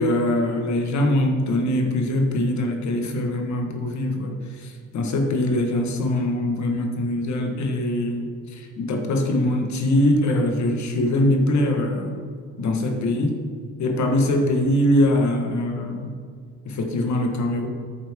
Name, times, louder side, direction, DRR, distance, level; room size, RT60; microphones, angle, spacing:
voice 1, 0.0-12.2 12.6-13.4 13.8-16.1 16.6-17.7, left 1 dB, 70° left, 4 dB, 1.4 m, -22 dB
9.4 x 7.4 x 3.6 m, 2.1 s
cardioid pair, 90°, 30 cm